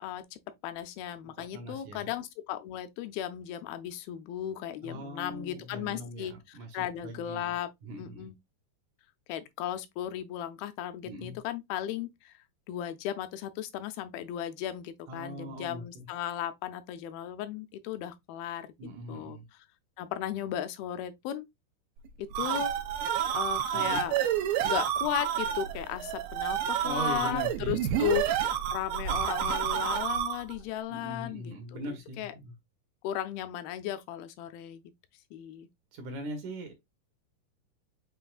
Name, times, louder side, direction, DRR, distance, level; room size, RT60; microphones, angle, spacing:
voice 1, 0.0-7.7 8.0-8.3 9.3-12.3 12.7-18.7 19.1-19.4 20.0-21.5 22.2-22.7 23.3-24.2 24.6-28.3 28.7-32.3 33.0-34.8 35.3-35.7, left 12 dB, 90° left, 2.4 m, -36 dB
voice 2, 1.4-2.1 4.8-7.6 7.8-8.3 11.1-11.4 15.1-16.1 18.8-19.5 23.7-24.0 26.8-28.2 30.9-32.5 35.9-36.8, right 1 dB, 70° right, 2.1 m, -41 dB
sound 1, 22.1-30.6, right 10 dB, 85° right, 2.5 m, -29 dB
7.7 x 2.6 x 2.3 m
omnidirectional pair, 4.2 m